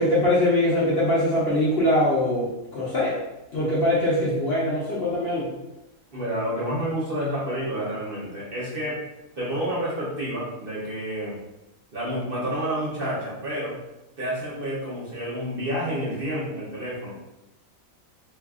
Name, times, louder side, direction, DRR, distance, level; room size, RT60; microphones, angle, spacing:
voice 1, 0.0-3.2 3.5-5.5, left 1 dB, 50° left, -7 dB, 0.8 m, -22 dB
voice 2, 6.1-9.0 9.4-11.4 11.9-13.8 14.2-17.1, equal, 45° right, -7 dB, 0.9 m, -29 dB
2.7 x 2.4 x 3.6 m, 0.96 s
omnidirectional pair, 1.6 m